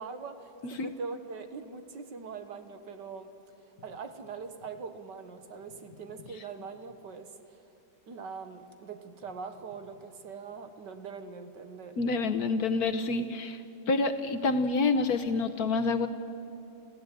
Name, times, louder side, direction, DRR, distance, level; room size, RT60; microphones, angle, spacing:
voice 1, 0.0-3.3 3.8-7.6 8.1-12.0, right 5 dB, 65° right, 8 dB, 2.0 m, -42 dB
voice 2, 12.0-13.6 13.9-16.1, left 3 dB, 55° left, 8 dB, 1.3 m, -27 dB
28.5 x 16.0 x 9.2 m, 2.9 s
omnidirectional pair, 2.1 m